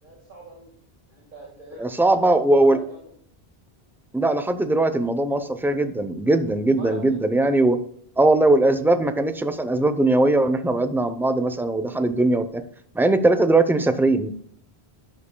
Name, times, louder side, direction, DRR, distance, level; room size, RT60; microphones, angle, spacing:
voice 1, 0.0-0.8 1.1-3.1 6.6-7.2, right 3 dB, 55° right, -2 dB, 2.0 m, -42 dB
voice 2, 1.8-2.8 4.1-7.8 8.2-12.6 12.9-14.3, right 2 dB, 5° right, 9 dB, 0.5 m, -20 dB
12.0 x 8.4 x 2.3 m, 0.64 s
omnidirectional pair, 1.1 m